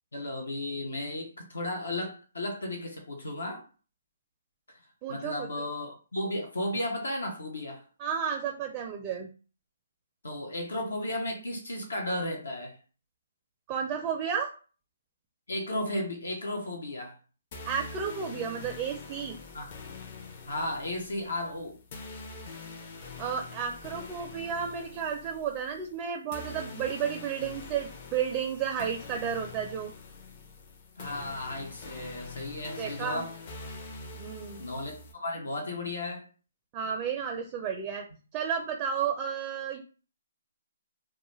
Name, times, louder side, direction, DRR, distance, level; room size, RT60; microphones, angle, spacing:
voice 1, 0.1-3.7 5.1-7.8 10.2-12.8 15.5-17.1 19.5-19.7 20.5-21.8 31.0-33.3 34.6-36.3, left 1 dB, 80° left, 0.7 m, -34 dB
voice 2, 5.0-5.5 8.0-9.3 13.7-14.5 17.7-19.4 23.2-29.9 32.8-33.2 34.1-34.6 36.7-38.0 38.3-39.8, right 7 dB, 25° right, 0.4 m, -32 dB
sound 1, 17.5-35.1, left 3 dB, 40° left, 0.6 m, -45 dB
2.3 x 2.1 x 3.1 m
figure-of-eight pair, 140°, 0 cm